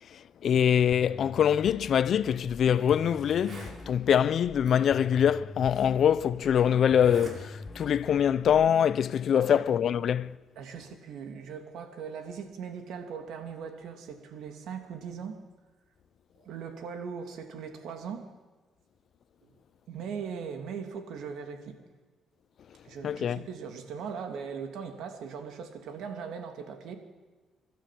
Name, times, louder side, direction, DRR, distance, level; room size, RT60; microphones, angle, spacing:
voice 1, 0.4-10.4 23.0-23.4, left 8 dB, 65° left, 0.6 m, -24 dB
sound 1, 0.9-8.9, left 3 dB, 35° left, 1.9 m, -45 dB
Zipper (clothing), 2.2-2.4 2.9-3.0 3.2-3.8 4.7-4.8 5.7-5.8 6.9-7.4 7.7-8.1, right 3 dB, 50° right, 6.2 m, -44 dB
voice 2, 10.6-15.4 16.4-18.3 19.4-19.5 19.9-21.8 22.8-27.0, right 6 dB, 80° right, 2.9 m, -39 dB
30.0 x 12.5 x 7.7 m
cardioid pair, 90°, 0 cm